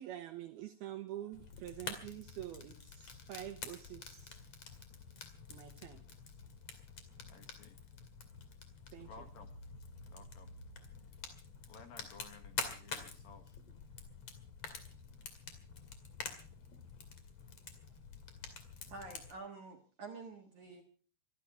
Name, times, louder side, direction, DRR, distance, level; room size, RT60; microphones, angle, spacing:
voice 1, 0.0-4.4 5.5-6.0 8.9-9.1, right 13 dB, 75° right, 2.5 m, -46 dB
Fire, 1.3-19.3, left 5 dB, 45° left, 2.6 m, -48 dB
voice 2, 7.3-7.8 9.0-9.5 10.1-10.6 11.7-13.6, left 5 dB, 60° left, 3.1 m, -56 dB
voice 3, 18.9-20.8, right 3 dB, 60° right, 2.2 m, -48 dB
25.0 x 12.0 x 4.7 m
omnidirectional pair, 5.4 m